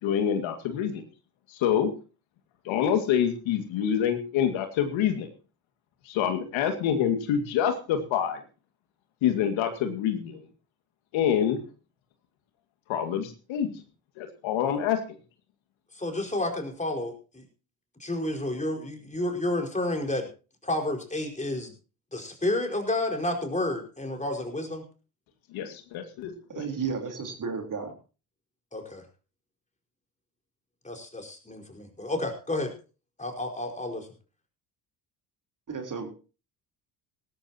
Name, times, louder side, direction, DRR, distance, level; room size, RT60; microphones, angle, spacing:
voice 1, 0.0-1.0 1.5-1.9 2.6-5.3 6.0-8.4 9.2-10.4 11.1-11.6 12.9-13.7 14.2-15.0 25.5-26.7, left 9 dB, 65° left, 7 dB, 2.2 m, -26 dB
voice 2, 15.9-17.4 18.0-20.3 20.6-21.7 22.1-24.8 28.7-29.0 30.8-32.7 33.2-34.1, left 1 dB, 15° left, 2 dB, 4.9 m, -30 dB
voice 3, 26.6-27.9 35.7-36.1, right 5 dB, 40° right, 4 dB, 3.8 m, -33 dB
17.5 x 14.5 x 2.9 m, 0.33 s
hypercardioid pair, 60°, 49 cm